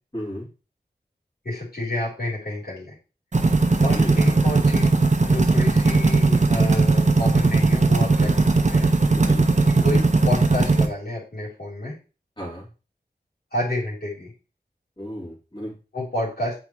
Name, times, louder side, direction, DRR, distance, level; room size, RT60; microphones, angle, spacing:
voice 1, 0.1-0.5 3.9-4.1 8.2-8.3 9.1-9.5 12.4-12.7 15.0-15.7, equal, 30° left, -6 dB, 3.0 m, -34 dB
voice 2, 1.4-2.9 3.8-4.9 5.2-8.5 8.7-8.9 9.8-11.9 13.5-14.3 15.9-16.6, left 1 dB, 60° left, -5 dB, 3.5 m, -29 dB
sound 1, 3.3-10.9, right 3 dB, 45° right, 0.9 m, -18 dB
8.5 x 3.9 x 3.1 m, 0.33 s
wide cardioid pair, 50°, 17 cm